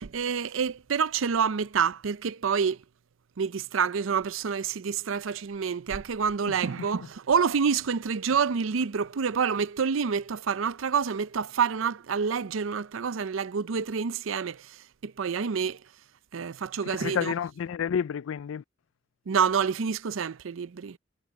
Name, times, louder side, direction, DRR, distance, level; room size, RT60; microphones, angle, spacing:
voice 1, 0.0-2.8 3.4-15.8 16.3-17.3 19.3-21.0, right 6 dB, 85° right, 0.5 m, -28 dB
voice 2, 16.9-18.6, left 7 dB, 85° left, 0.4 m, -30 dB
head